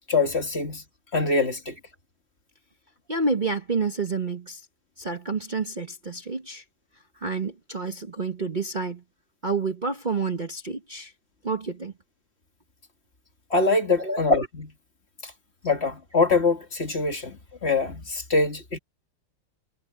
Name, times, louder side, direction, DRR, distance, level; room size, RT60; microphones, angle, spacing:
voice 1, 0.1-0.8 1.1-1.8 13.5-14.7 15.2-15.3 15.6-18.8, left 3 dB, 40° left, 2.0 m, -24 dB
voice 2, 3.1-4.6 5.0-6.6 7.2-9.0 9.4-11.1 11.4-11.9 14.0-14.2, right 4 dB, 30° right, 1.2 m, -29 dB
omnidirectional pair, 1.8 m